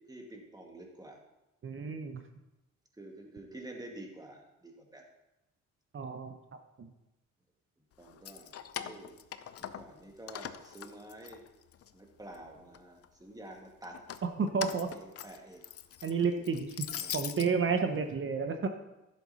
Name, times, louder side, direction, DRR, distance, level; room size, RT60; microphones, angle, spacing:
voice 1, 0.1-1.2 3.0-5.0 8.0-9.2 9.7-11.4 11.9-14.0 14.6-15.6 16.9-17.2 17.9-18.1, right 1 dB, 10° right, 1 dB, 2.2 m, -49 dB
voice 2, 1.6-2.2 5.9-6.3 6.8-6.9 14.4-14.9 16.0-16.9 17.1-18.7, right 5 dB, 40° right, 6 dB, 1.0 m, -31 dB
Keys jangling, 8.1-10.0 10.3-11.9 12.3-13.1 13.8-17.5, left 9 dB, 50° left, 0.7 m, -42 dB
11.0 x 7.9 x 4.2 m, 0.94 s
cardioid pair, 90°, 30 cm